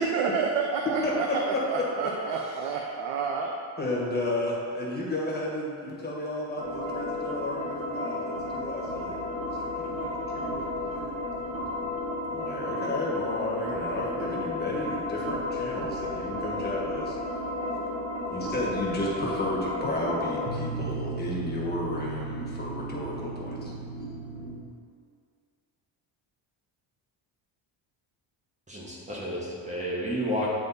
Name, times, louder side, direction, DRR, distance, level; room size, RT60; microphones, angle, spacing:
voice 1, 0.0-3.5, right 5 dB, 80° right, 1 dB, 0.7 m, -29 dB
voice 2, 3.8-9.2 9.5-11.2 12.3-17.2 18.3-23.7, left 1 dB, 20° left, -5 dB, 1.5 m, -33 dB
sound 1, 6.6-24.6, left 1 dB, 55° right, 1.7 m, -33 dB
voice 3, 28.7-30.5, equal, 15° right, -5 dB, 1.2 m, -31 dB
8.9 x 3.4 x 4.1 m, 2.2 s
cardioid pair, 140°, 47 cm